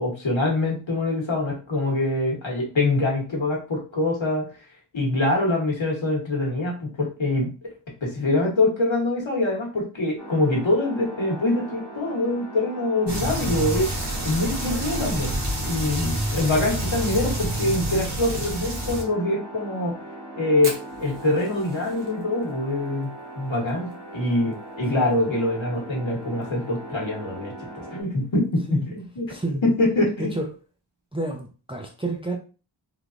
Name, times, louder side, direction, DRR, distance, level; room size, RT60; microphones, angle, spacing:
voice 1, 0.0-4.5 4.9-7.7 8.0-15.3 15.6-20.0 20.3-29.3 29.6-30.3, left 2 dB, 70° left, 1.1 m, -24 dB
sound 1, 10.2-28.0, right 1 dB, 35° right, 1.0 m, -40 dB
sound 2, 13.1-19.0, right 1 dB, 60° right, 1.1 m, -28 dB
Fire, 20.6-25.1 25.4-25.5 25.7-25.8 26.2-26.6 27.2-27.3 28.3-28.5, right 3 dB, 85° right, 0.9 m, -40 dB
voice 2, 29.3-29.6 30.2-30.5 31.1-32.4, right 2 dB, 10° right, 0.4 m, -30 dB
3.2 x 2.2 x 2.5 m
wide cardioid pair, 45°, 48 cm